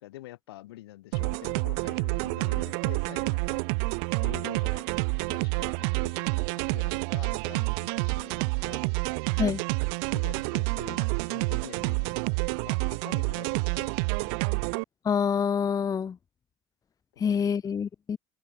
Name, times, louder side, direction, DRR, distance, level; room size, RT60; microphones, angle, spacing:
voice 1, 0.0-3.6 4.2-8.9 10.1-14.3 17.1-17.2, left 16 dB, 80° left, 3.3 m, -46 dB
sound 1, 1.1-14.8, right 39 dB, 70° right, 0.5 m, -28 dB
voice 2, 15.0-16.2 17.2-18.2, left 7 dB, 30° left, 0.5 m, -26 dB
open air
hypercardioid pair, 65°, 13 cm